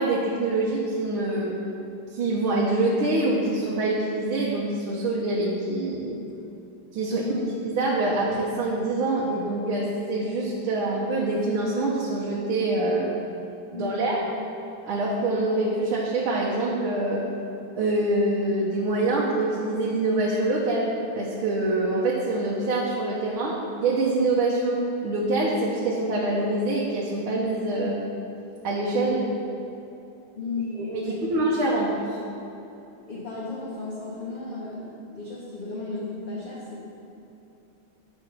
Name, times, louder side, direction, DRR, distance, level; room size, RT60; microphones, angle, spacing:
voice 1, 0.0-1.6 2.1-6.2 6.9-13.1 13.7-14.2 14.8-17.2 17.7-28.0 28.6-29.3 30.8-32.2, right 2 dB, 80° right, -5 dB, 1.9 m, -25 dB
voice 2, 7.1-7.6 13.7-14.1 30.3-31.4 33.1-36.9, left 3 dB, 30° left, -7 dB, 1.2 m, -34 dB
9.8 x 5.1 x 6.4 m, 2.8 s
omnidirectional pair, 2.3 m